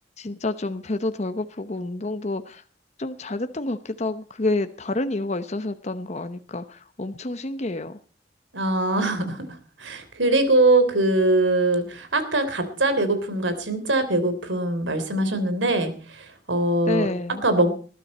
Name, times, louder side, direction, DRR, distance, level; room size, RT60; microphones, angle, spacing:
voice 1, 0.2-2.6 3.0-8.0 16.9-17.4, left 2 dB, 40° left, 10 dB, 0.8 m, -29 dB
voice 2, 8.5-9.5 9.8-17.1 17.4-17.7, right 2 dB, 85° right, 10 dB, 3.4 m, -22 dB
20.5 x 12.0 x 4.2 m, 0.38 s
head